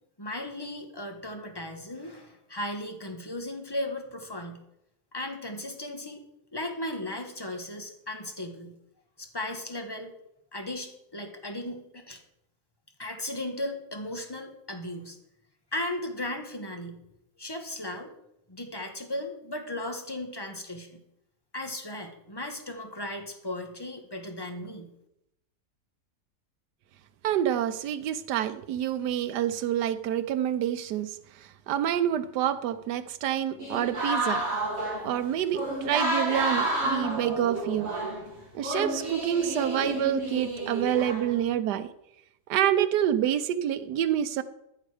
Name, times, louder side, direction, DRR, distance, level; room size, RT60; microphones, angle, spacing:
voice 1, 0.2-4.6 5.1-6.2 6.5-8.7 9.2-10.1 10.5-12.2 13.0-15.2 15.7-17.0 17.4-18.1 18.5-21.0 21.5-24.9, left 1 dB, 15° left, 4 dB, 1.2 m, -36 dB
voice 2, 27.2-31.2 31.7-34.4 35.0-37.9 38.5-41.9 42.5-44.4, right 10 dB, 90° right, 12 dB, 1.3 m, -27 dB
sound 1, 33.6-38.3 38.6-41.4, right 1 dB, 40° right, 3.8 m, -30 dB
14.0 x 6.6 x 4.9 m, 0.82 s
omnidirectional pair, 1.7 m